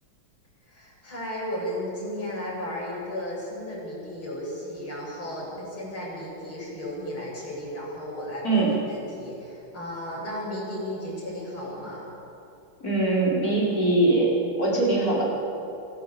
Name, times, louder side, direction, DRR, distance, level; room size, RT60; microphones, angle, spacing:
voice 1, 0.7-12.0, left 1 dB, 80° left, -5 dB, 8.4 m, -34 dB
voice 2, 12.8-14.3 14.6-15.2, right 2 dB, 45° left, -5 dB, 5.9 m, -22 dB
25.5 x 15.0 x 8.8 m, 2.8 s
omnidirectional pair, 2.2 m